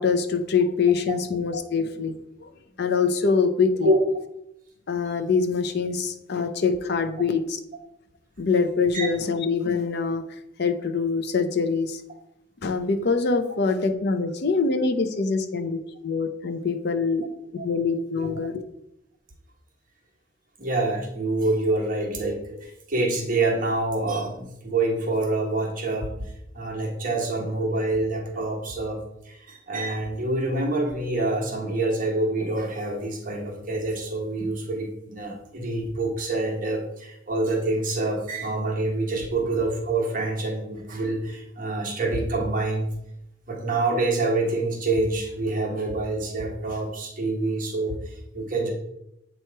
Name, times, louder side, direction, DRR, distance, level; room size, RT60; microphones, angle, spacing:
voice 1, 0.0-2.5 2.8-3.9 4.9-7.6 8.4-10.2 10.6-12.0 12.6-17.3 17.6-18.6, left 5 dB, 60° left, 8 dB, 0.6 m, -24 dB
voice 2, 20.6-42.9 43.5-48.7, right 2 dB, 45° right, 0 dB, 1.2 m, -26 dB
7.7 x 3.1 x 4.5 m, 0.83 s
head